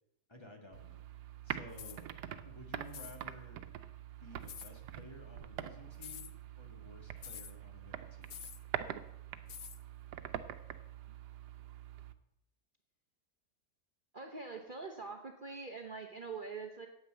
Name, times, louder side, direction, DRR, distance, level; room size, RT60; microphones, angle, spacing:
voice 1, 0.3-1.0 1.4-2.1 2.4-3.7 4.2-8.4, left 1 dB, 15° left, 2 dB, 1.8 m, -54 dB
sound 1, 0.7-12.1, right 11 dB, 90° right, 1.3 m, -45 dB
sound 2, 1.7-2.0 2.9-3.2 4.5-4.7 6.0-6.3 7.2-7.5 8.3-8.6 9.5-9.8, left 9 dB, 85° left, 0.5 m, -47 dB
voice 2, 14.1-16.9, right 4 dB, 40° right, 2 dB, 0.9 m, -44 dB
9.4 x 8.8 x 7.5 m, 0.85 s
omnidirectional pair, 1.7 m